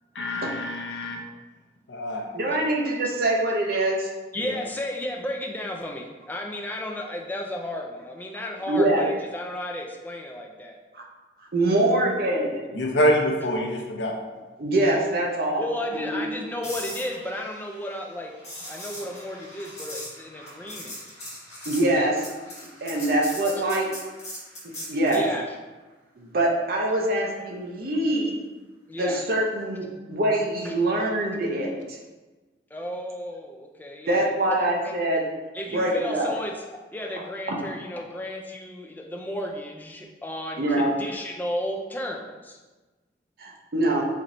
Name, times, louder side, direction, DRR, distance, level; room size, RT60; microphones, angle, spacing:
voice 1, 0.1-1.2 1.9-2.3 4.4-4.6 12.7-14.1, equal, 80° left, 1 dB, 0.6 m, -25 dB
voice 2, 2.3-4.1 8.3-9.2 11.5-12.5 14.6-15.6 15.9-16.2 21.7-22.2 22.8-23.9 24.9-25.2 26.2-28.3 28.9-32.0 34.1-35.3 35.7-36.3 37.5-37.6 40.6-40.9 43.4-44.1, right 1 dB, 55° right, -1 dB, 0.6 m, -24 dB
voice 3, 4.3-10.8 15.6-18.3 18.7-20.9 25.1-25.4 28.9-29.2 32.7-34.3 35.5-36.5 36.9-42.6, left 1 dB, 10° left, 1 dB, 0.3 m, -33 dB
sound 1, 16.6-25.3 29.5-29.7, left 1 dB, 35° left, 1.3 m, -40 dB
4.3 x 3.0 x 2.6 m, 1.2 s
head